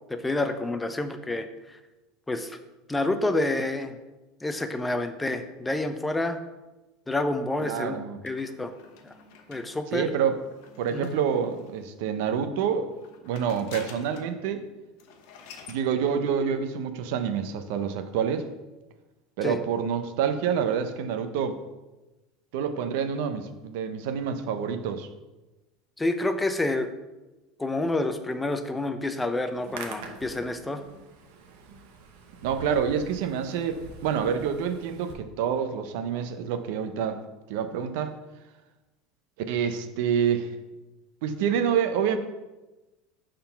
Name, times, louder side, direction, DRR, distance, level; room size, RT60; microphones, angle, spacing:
voice 1, 0.1-1.8 2.3-2.6 2.9-4.0 4.4-6.4 7.1-8.0 8.2-8.7 9.0-9.1 9.5-10.1 10.9-11.1 19.4-19.6 26.0-26.9 27.6-30.8, left 2 dB, 10° left, 8 dB, 0.4 m, -28 dB
voice 2, 7.6-8.2 9.9-10.4 10.8-12.9 13.2-14.6 15.7-18.5 19.4-21.6 22.5-25.1 32.4-37.2 37.5-38.1 39.5-40.5 41.2-42.2, right 7 dB, 70° right, 8 dB, 0.6 m, -27 dB
sound 1, 8.3-11.9 12.9-14.4 14.7-14.8 15.0-15.8, left 5 dB, 65° left, 0.9 m, -48 dB
Hands, 29.5-35.1, right 4 dB, 85° right, 1.0 m, -45 dB
6.7 x 3.8 x 5.6 m, 1.1 s
cardioid pair, 160°, 0 cm